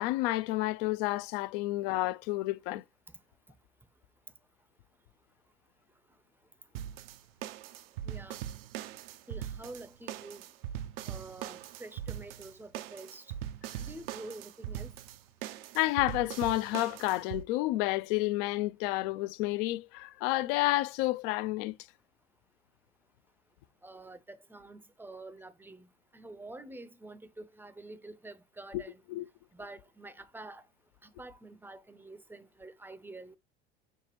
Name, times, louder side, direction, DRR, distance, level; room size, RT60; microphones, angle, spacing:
voice 1, 0.0-2.8 15.7-21.8 28.7-28.8 29.1-29.3, left 18 dB, 60° left, 0.4 m, -30 dB
sound 1, 6.7-17.4, right 11 dB, 65° right, 0.5 m, -41 dB
voice 2, 8.1-8.4 9.3-10.4 11.1-13.3 13.8-14.9 23.8-25.9 26.1-29.0 29.5-30.6 31.0-33.4, right 2 dB, 5° right, 0.5 m, -47 dB
6.0 x 2.1 x 3.0 m
hypercardioid pair, 70°, 31 cm